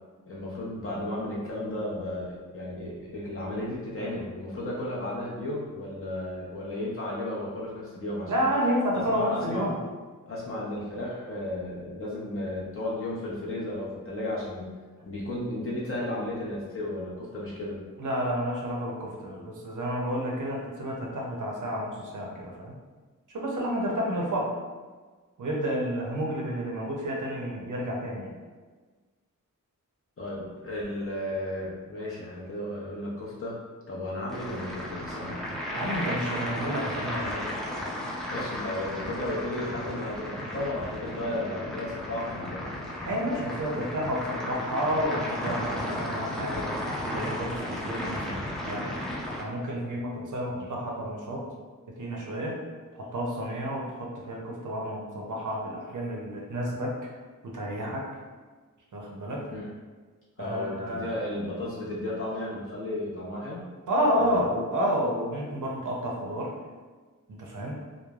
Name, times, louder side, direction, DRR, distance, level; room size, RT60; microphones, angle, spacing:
voice 1, 0.3-8.5 9.1-9.6 10.3-14.7 15.0-17.8 30.2-33.6 33.9-35.4 38.3-42.6 59.5-59.7 60.4-63.7 64.2-64.5, left 1 dB, 40° left, -6 dB, 0.7 m, -34 dB
voice 2, 8.3-9.8 18.0-22.8 23.3-24.5 25.4-28.3 35.7-37.5 43.1-46.7 47.0-48.9 49.4-51.5 52.0-52.6 52.9-56.9 57.4-58.0 58.9-59.5 60.4-61.2 63.9-66.5 67.3-67.8, equal, 65° right, -2 dB, 0.6 m, -30 dB
sound 1, 34.3-49.4, left 1 dB, ahead, 0.4 m, -34 dB
3.1 x 2.0 x 2.3 m, 1.4 s
wide cardioid pair, 120°, 33 cm